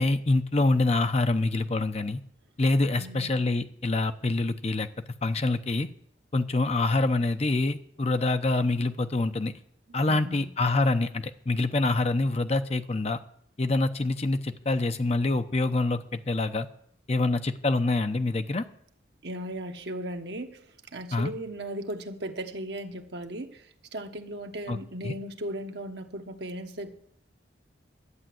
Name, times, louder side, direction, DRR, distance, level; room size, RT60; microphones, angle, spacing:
voice 1, 0.0-2.2 2.6-4.9 5.2-5.9 6.3-9.5 9.9-13.2 13.6-16.7 17.1-18.6 21.1-21.3 24.7-24.8 25.0-25.2, left 2 dB, 35° left, 9 dB, 0.7 m, -26 dB
voice 2, 2.9-3.3 9.9-10.5 19.2-20.6 20.9-23.7 23.9-26.9, right 1 dB, 65° right, 5 dB, 1.2 m, -37 dB
11.5 x 8.1 x 7.7 m, 0.66 s
head